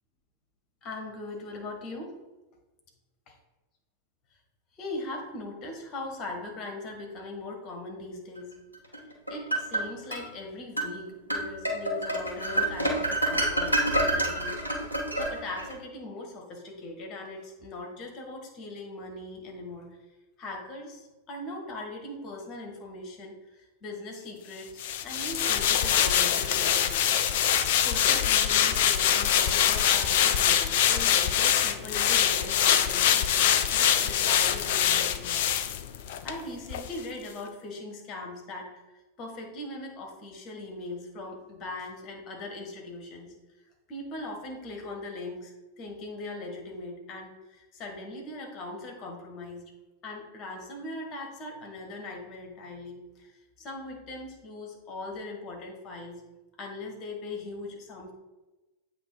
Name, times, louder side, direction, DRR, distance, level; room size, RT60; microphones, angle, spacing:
voice 1, 0.8-2.2 4.7-8.5 9.3-14.6 14.9-19.9 20.4-26.9 27.3-35.4 36.2-38.8 39.2-43.3 43.9-49.6 50.0-56.2 56.6-58.1, left 2 dB, 35° left, 2 dB, 1.6 m, -40 dB
sound 1, 8.9-10.2 10.8-10.9 11.3-15.7, right 1 dB, 85° right, 1.1 m, -28 dB
sound 2, 24.8-36.4 36.7-36.9, left 9 dB, 50° left, 0.4 m, -24 dB
8.0 x 3.1 x 4.9 m, 1.1 s
figure-of-eight pair, 90°, 0 cm